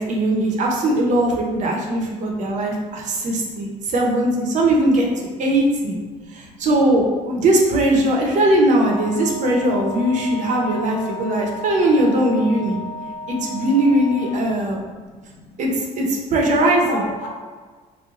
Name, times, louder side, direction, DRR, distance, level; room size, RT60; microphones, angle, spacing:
voice 1, 0.0-5.1 5.4-6.0 6.3-12.8 13.3-14.8 15.6-17.0, right 1 dB, 55° right, 0 dB, 0.7 m, -19 dB
voice 2, 1.7-3.8 6.1-6.7 9.6-9.7 11.1-11.6 12.8-13.6 14.5-15.6 16.8-17.3, left 1 dB, 80° left, -2 dB, 0.9 m, -39 dB
Wind instrument woodwind instrument, 8.7-14.5, left 1 dB, 45° left, 0.6 m, -34 dB
3.0 x 2.2 x 3.6 m, 1.4 s
cardioid pair, 115°, 15 cm